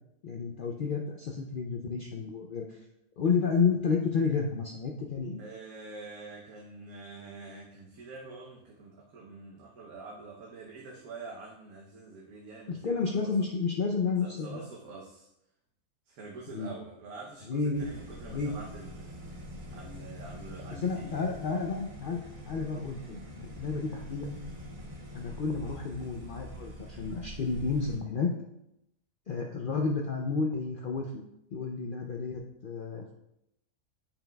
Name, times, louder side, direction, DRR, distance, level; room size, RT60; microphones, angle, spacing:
voice 1, 0.2-2.8 3.2-5.4 12.7-14.7 16.5-16.7 17.5-17.9 18.3-18.5 20.7-24.4 25.1-28.3 29.3-31.2 31.5-33.1, left 5 dB, 65° left, 1 dB, 0.5 m, -31 dB
voice 2, 5.4-13.3 14.1-15.3 16.1-19.1 19.7-21.2, right 3 dB, 85° right, -2 dB, 1.3 m, -46 dB
sound 1, 17.7-28.0, equal, 70° right, 1.6 m, -44 dB
8.9 x 5.7 x 2.2 m, 0.84 s
omnidirectional pair, 1.5 m